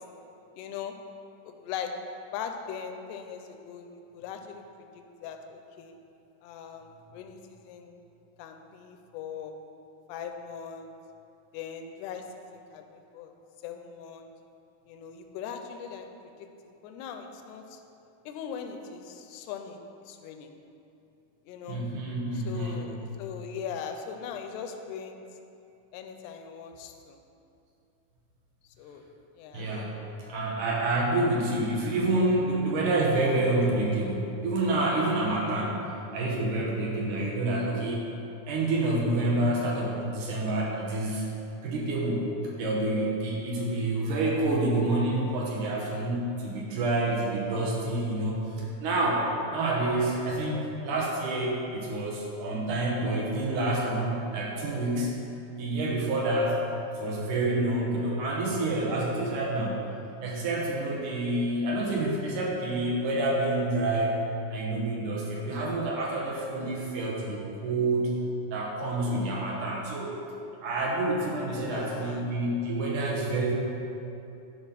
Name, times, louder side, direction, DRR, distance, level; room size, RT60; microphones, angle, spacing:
voice 1, 0.6-0.9 1.5-2.0 2.3-4.6 4.9-5.9 6.4-6.9 7.1-8.0 8.4-9.6 10.1-10.9 11.5-13.3 13.6-14.3 14.9-16.1 16.6-17.8 18.3-19.8 20.1-20.5 21.5-21.9 22.3-25.2 25.9-27.2 28.8-29.0 29.4-29.7 71.5-72.3, left 7 dB, 85° left, 5 dB, 2.7 m, -40 dB
voice 2, 21.7-22.9 29.5-29.9 30.3-35.8 36.1-38.1 38.5-41.2 41.6-42.2 42.6-49.3 49.5-55.1 55.6-56.6 57.0-59.8 60.2-68.1 68.5-70.1 70.6-73.5, right 2 dB, 65° right, -3 dB, 2.2 m, -28 dB
11.5 x 4.1 x 5.7 m, 2.8 s
omnidirectional pair, 4.6 m